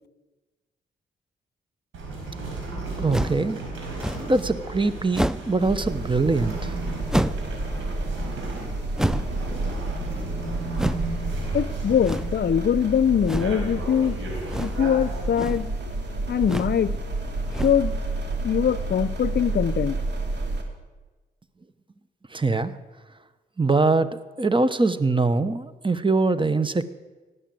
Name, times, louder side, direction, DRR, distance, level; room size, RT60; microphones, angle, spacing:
sound 1, 1.9-15.3, right 2 dB, 85° right, 4.6 m, -35 dB
voice 1, 3.0-3.6 4.2-6.8 22.3-22.7 23.6-26.9, right 3 dB, 25° right, 14 dB, 1.0 m, -23 dB
sound 2, 3.1-3.5 4.0-4.4 5.1-5.6 7.1-7.5 9.0-9.4 10.7-11.1 12.0-12.4 13.2-13.6 14.5-14.9 15.2-15.7 16.4-16.8 17.5-17.9, right 1 dB, 5° right, 0.5 m, -28 dB
sound 3, 5.6-20.6, right 2 dB, 60° right, 2.7 m, -30 dB
voice 2, 11.5-14.2 14.6-15.7 16.3-17.0 17.6-17.9 18.4-20.0, left 8 dB, 55° left, 17 dB, 0.6 m, -22 dB
17.5 x 8.2 x 7.7 m, 1.2 s
supercardioid pair, 50°, 20 cm